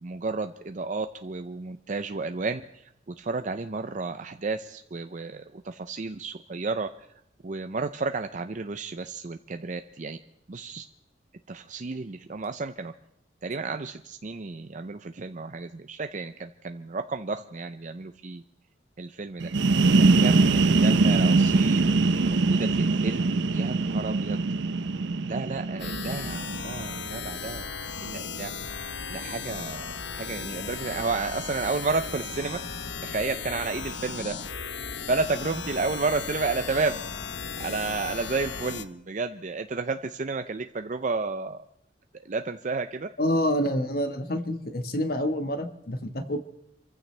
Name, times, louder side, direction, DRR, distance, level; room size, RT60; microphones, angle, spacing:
voice 1, 0.0-6.9 7.4-10.2 10.5-10.8 11.5-12.9 13.4-18.4 19.0-19.5 20.0-24.4 25.3-27.7 28.0-28.5 29.1-32.6 33.0-34.3 35.1-37.0 37.6-41.6 42.2-43.1, right 3 dB, 45° right, 8 dB, 0.5 m, -32 dB
sound 1, 19.4-27.0, right 3 dB, 85° right, 0.6 m, -22 dB
sound 2, 25.8-38.8, left 5 dB, 80° left, 0.9 m, -36 dB
voice 2, 43.2-46.4, equal, 55° left, 8 dB, 1.3 m, -27 dB
27.5 x 15.0 x 3.3 m, 0.76 s
head